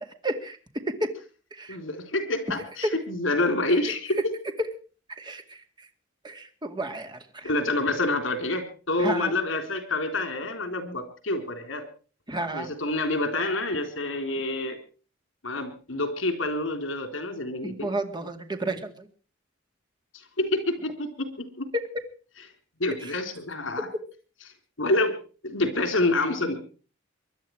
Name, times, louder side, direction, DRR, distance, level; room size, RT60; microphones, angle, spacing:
voice 1, 0.2-0.6 1.0-1.1 1.5-1.8 3.8-3.9 5.2-5.9 6.2-7.5 9.0-9.3 12.3-12.7 17.6-19.1 21.7-21.8 23.0-23.1, right 1 dB, 25° right, 6 dB, 2.3 m, -32 dB
voice 2, 1.7-4.4 7.4-11.9 12.5-14.8 15.4-17.9 20.1-21.7 22.8-23.9 24.8-25.2 25.4-26.6, left 2 dB, 80° left, 8 dB, 3.9 m, -27 dB
23.5 x 11.0 x 4.8 m, 0.39 s
head